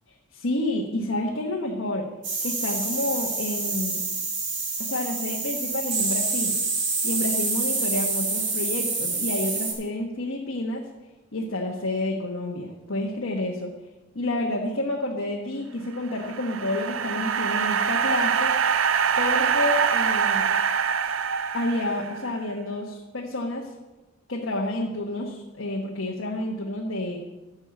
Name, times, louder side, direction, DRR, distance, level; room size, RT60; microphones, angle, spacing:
voice 1, 0.3-2.1 2.4-4.0 4.8-6.6 7.0-10.8 11.3-13.7 14.1-18.5 19.2-20.6 21.5-23.7 24.3-27.2, left 1 dB, 75° left, -1 dB, 1.2 m, -29 dB
sound 1, 2.2-9.7, right 3 dB, 60° right, 3.9 m, -27 dB
sound 2, 16.0-22.4, right 7 dB, 80° right, 0.6 m, -24 dB
11.0 x 6.4 x 7.7 m, 1.1 s
head